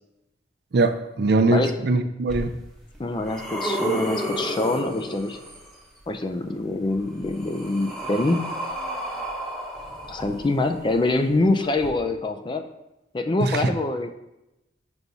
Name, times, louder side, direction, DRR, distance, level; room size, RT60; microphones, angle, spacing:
voice 1, 0.7-2.5 13.4-13.6, right 3 dB, 60° right, 8 dB, 0.5 m, -21 dB
sound 1, 2.3-2.4 2.9-5.7 6.9-10.8 11.8-11.9, right 1 dB, ahead, 1.0 m, -31 dB
voice 2, 3.0-5.4 6.1-8.5 10.1-12.6 13.1-14.1, left 2 dB, 25° left, 8 dB, 0.4 m, -25 dB
5.3 x 4.7 x 4.0 m, 0.91 s
head